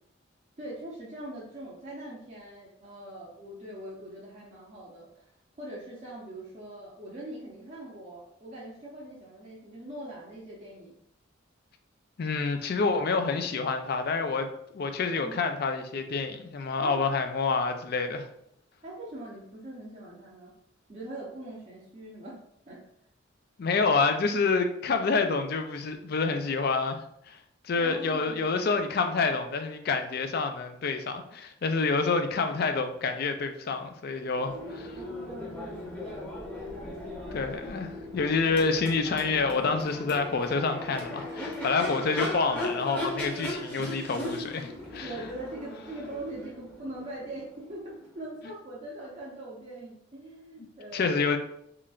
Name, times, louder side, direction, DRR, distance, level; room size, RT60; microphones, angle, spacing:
voice 1, 0.6-5.3 5.6-10.9 15.2-15.3 16.8-17.0 18.8-20.5 20.9-22.4 22.7-22.8 27.7-28.5 34.9-37.5 43.8-43.9 45.0-51.1, right 1 dB, 35° right, -6 dB, 0.6 m, -42 dB
voice 2, 12.2-14.5 14.7-18.3 23.6-27.4 27.6-34.9 37.3-45.1 50.9-51.4, left 4 dB, 50° left, 7 dB, 0.4 m, -28 dB
Crowd / Race car auto racing / Accelerating revving vroom, 34.3-48.1, left 1 dB, 10° left, 0.8 m, -38 dB
3.8 x 3.2 x 2.4 m, 0.73 s
head